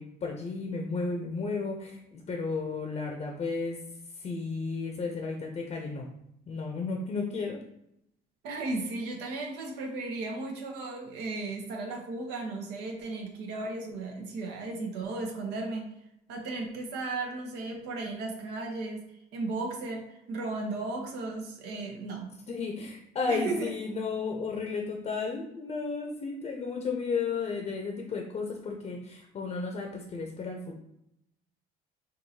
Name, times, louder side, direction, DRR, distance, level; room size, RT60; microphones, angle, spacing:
voice 1, 0.0-3.8 4.2-6.0 6.5-7.6 22.5-30.8, left 4 dB, 40° left, 1 dB, 0.6 m, -33 dB
voice 2, 8.4-15.9 16.3-19.0 19.3-20.0 20.3-22.3 23.3-23.7, right 3 dB, 85° right, 0 dB, 0.9 m, -35 dB
4.6 x 2.6 x 2.7 m, 0.81 s
cardioid pair, 110°, 17 cm